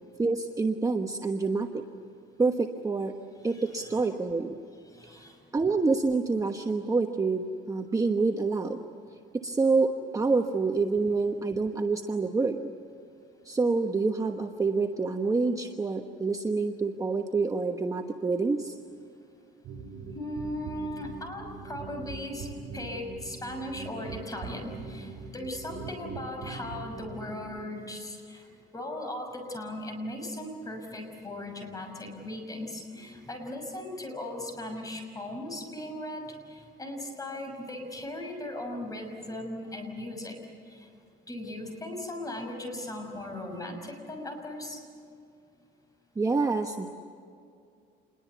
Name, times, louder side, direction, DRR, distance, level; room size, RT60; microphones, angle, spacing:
voice 1, 0.2-1.8 2.4-3.2 3.4-4.6 5.5-8.8 9.3-12.7 13.4-18.7 46.2-46.9, right 3 dB, 15° right, 4 dB, 1.1 m, -27 dB
voice 2, 3.5-4.4 4.9-5.4 20.1-22.5 22.7-28.4 28.7-40.4 40.7-40.9 41.3-44.8, left 1 dB, 20° left, 3 dB, 6.2 m, -38 dB
sound 1, 19.6-27.6, right 4 dB, 80° right, 3.3 m, -42 dB
27.5 x 21.5 x 8.2 m, 2.4 s
cardioid pair, 130°, 19 cm